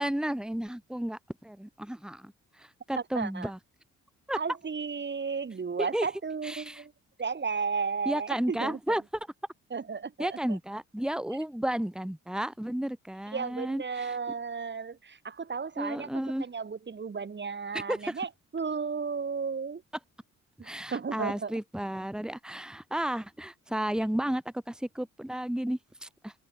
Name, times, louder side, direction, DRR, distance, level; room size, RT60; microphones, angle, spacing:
voice 1, 0.0-2.3 2.6-3.6 4.3-4.4 5.8-6.1 6.4-6.8 8.1-9.0 10.2-14.1 15.8-16.4 17.7-18.2 20.6-26.3, right 1 dB, ahead, 2.5 m, -33 dB
voice 2, 3.1-3.5 4.4-6.9 7.2-8.8 9.7-10.6 13.3-16.1 16.4-19.8 20.6-21.6, right 5 dB, 35° right, 7.8 m, -34 dB
cardioid pair, 90°, 30 cm